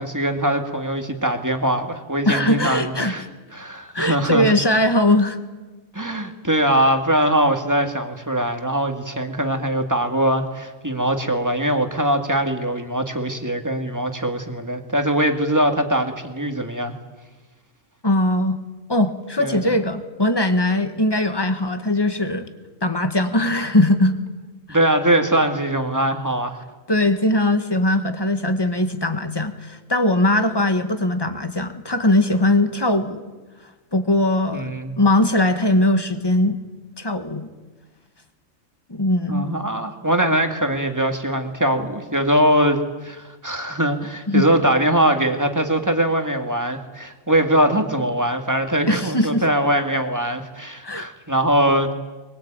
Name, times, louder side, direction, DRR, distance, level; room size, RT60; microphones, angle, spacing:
voice 1, 0.0-3.3 3.5-4.8 5.9-16.9 19.4-19.7 24.7-26.6 34.5-35.0 39.3-51.9, right 1 dB, 15° right, 5 dB, 2.3 m, -22 dB
voice 2, 2.2-3.2 3.9-5.4 18.0-18.6 18.9-22.5 22.8-24.2 26.9-33.2 33.9-36.6 37.0-37.5 38.9-39.5 44.3-44.5 48.9-49.4 50.8-51.1, left 1 dB, 20° left, 8 dB, 1.7 m, -20 dB
23.0 x 22.5 x 9.1 m, 1.2 s
omnidirectional pair, 1.4 m